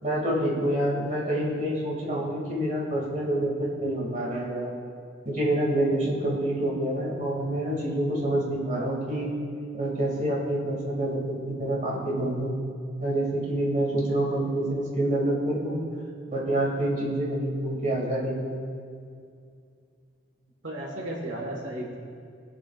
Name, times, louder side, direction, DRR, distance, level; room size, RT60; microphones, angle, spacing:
voice 1, 0.0-4.7 5.2-9.3 9.7-12.6 13.0-15.8 16.3-18.6, right 1 dB, 40° right, -4 dB, 2.4 m, -27 dB
voice 2, 20.6-21.9, right 1 dB, 80° right, -2 dB, 1.6 m, -34 dB
20.5 x 7.6 x 2.5 m, 2.3 s
head